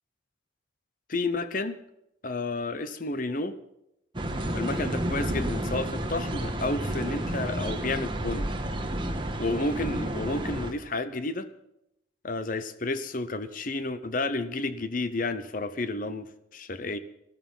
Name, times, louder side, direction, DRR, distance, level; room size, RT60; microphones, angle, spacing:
voice 1, 1.1-1.8 2.2-3.5 4.5-8.5 9.4-11.5 12.2-17.0, left 2 dB, 45° left, 12 dB, 0.8 m, -31 dB
sound 1, 4.1-10.7, right 1 dB, 25° right, 1.6 m, -31 dB
15.0 x 13.0 x 5.6 m, 0.83 s
head